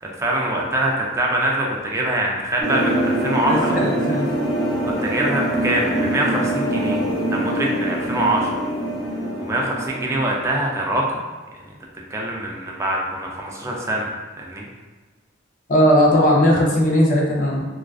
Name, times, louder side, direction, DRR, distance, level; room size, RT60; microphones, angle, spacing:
voice 1, 0.0-3.6 4.8-7.0 7.3-8.5 9.4-11.2 12.1-14.1 14.4-14.7, right 1 dB, 15° right, -2 dB, 0.3 m, -24 dB
sound 1, 2.6-10.5, right 1 dB, 5° left, 0.7 m, -24 dB
voice 2, 3.5-4.3 15.7-17.7, equal, 45° left, -2 dB, 0.5 m, -17 dB
2.3 x 2.3 x 2.3 m, 1.3 s
head